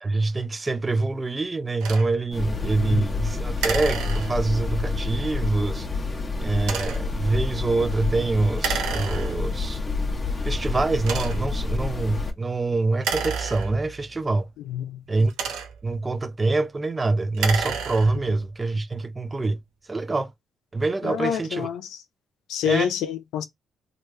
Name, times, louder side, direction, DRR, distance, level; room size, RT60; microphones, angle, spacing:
voice 1, 0.0-5.9 6.4-9.8 10.4-14.5 15.1-15.3 15.8-19.6 19.9-20.3 20.7-21.7 22.6-22.9, right 3 dB, 25° right, 0.6 m, -25 dB
sound 1, 1.8-2.1 3.6-4.6 6.6-7.1 8.6-9.6 10.3-10.4 11.0-11.6 12.9-14.1 15.1-16.0 17.2-18.3, right 6 dB, 90° right, 0.8 m, -30 dB
sound 2, 2.3-12.3, left 3 dB, 25° left, 1.0 m, -28 dB
voice 2, 14.7-15.0 21.0-21.8 22.5-23.4, left 9 dB, 85° left, 0.5 m, -27 dB
3.2 x 2.5 x 3.2 m
cardioid pair, 90°, 0 cm